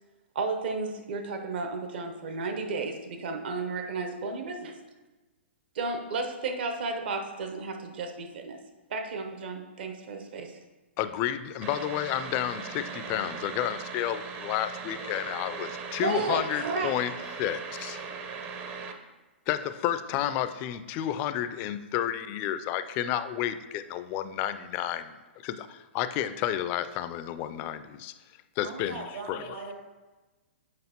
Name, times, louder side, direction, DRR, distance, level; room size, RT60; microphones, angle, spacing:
voice 1, 0.3-4.7 5.7-8.6 8.9-10.5 16.0-16.9, right 3 dB, 55° right, 5 dB, 0.8 m, -33 dB
voice 2, 11.0-18.0 19.5-25.1 25.4-28.1 28.6-29.0 29.3-29.4, left 11 dB, 30° left, 12 dB, 0.3 m, -31 dB
sound 1, 11.6-18.9, right 5 dB, 30° right, 0.6 m, -39 dB
voice 3, 28.6-29.7, right 3 dB, 70° right, -1 dB, 2.0 m, -39 dB
7.7 x 5.1 x 2.9 m, 1.2 s
figure-of-eight pair, 115°, 7 cm